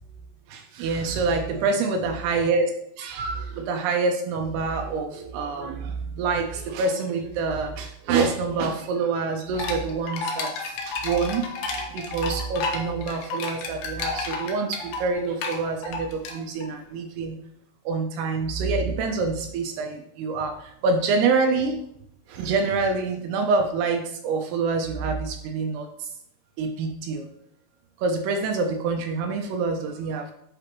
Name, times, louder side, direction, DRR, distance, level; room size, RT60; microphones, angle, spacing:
voice 1, 0.5-2.7 3.0-17.4 17.9-21.8 22.3-26.1 26.6-27.3 28.0-30.3, right 4 dB, 85° right, 4 dB, 2.3 m, -26 dB
sound 1, 9.5-16.7, left 3 dB, 80° left, 2.1 m, -31 dB
9.9 x 4.1 x 3.0 m, 0.74 s
omnidirectional pair, 5.3 m